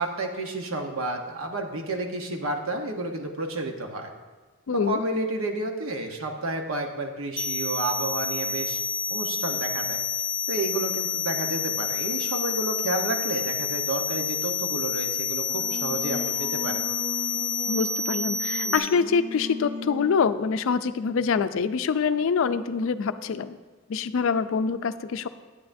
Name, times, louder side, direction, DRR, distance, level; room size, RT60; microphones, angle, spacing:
voice 1, 0.0-4.1 4.7-8.8 9.1-10.0 10.5-16.8, right 2 dB, 75° right, 3 dB, 1.0 m, -31 dB
voice 2, 4.7-5.0 17.7-23.6 23.9-25.3, left 5 dB, 65° left, 12 dB, 0.4 m, -25 dB
sound 1, 7.4-18.8, left 6 dB, 25° left, 1.1 m, -29 dB
Singing, 15.3-20.2, left 3 dB, 35° right, 1.5 m, -37 dB
11.0 x 8.6 x 2.6 m, 1.4 s
head